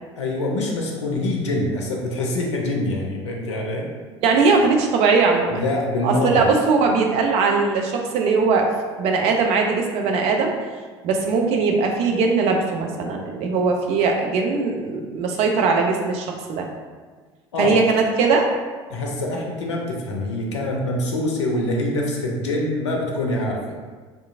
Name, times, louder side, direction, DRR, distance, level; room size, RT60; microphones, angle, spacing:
voice 1, 0.2-3.9 5.5-6.5 17.5-17.7 18.9-23.6, left 1 dB, 70° left, -1 dB, 0.5 m, -25 dB
voice 2, 4.2-5.6 6.0-8.7 9.0-10.5 11.0-16.7 17.6-18.5, right 4 dB, 45° right, 2 dB, 0.4 m, -20 dB
2.7 x 2.4 x 2.4 m, 1.4 s
figure-of-eight pair, 65°, 15 cm